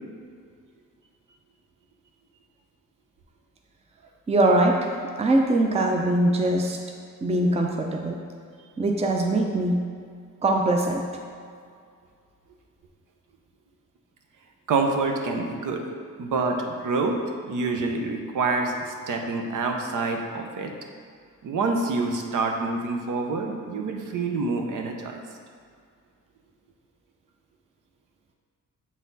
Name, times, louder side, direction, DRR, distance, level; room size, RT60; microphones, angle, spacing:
voice 1, 4.3-4.9 5.2-6.8 7.2-8.2 8.8-9.8 10.4-11.1, right 1 dB, 20° right, 2 dB, 0.5 m, -22 dB
voice 2, 14.7-15.8 16.2-17.2 17.5-20.7 21.4-25.2, right 3 dB, 80° right, 3 dB, 0.8 m, -27 dB
7.3 x 4.1 x 4.0 m, 2.2 s
cardioid pair, 100°, 31 cm